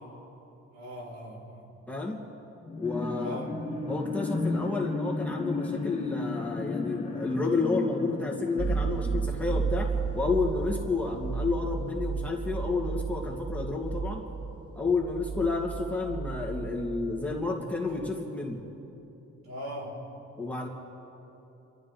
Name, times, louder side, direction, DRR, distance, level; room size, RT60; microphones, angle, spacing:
voice 1, 0.7-1.7 3.1-3.6 19.4-20.1, equal, 60° right, -2 dB, 4.2 m, -39 dB
voice 2, 1.9-2.2 2.8-3.4 3.9-14.2 14.8-18.6 20.4-20.7, left 3 dB, 5° left, -3 dB, 2.5 m, -30 dB
sound 1, 2.6-10.4 10.9-11.0, left 3 dB, 20° left, 1.6 m, -34 dB
sound 2, 8.6-17.6 17.9-18.1, right 5 dB, 15° right, 0.6 m, -33 dB
30.0 x 13.5 x 3.4 m, 2.9 s
cardioid pair, 90°, 30 cm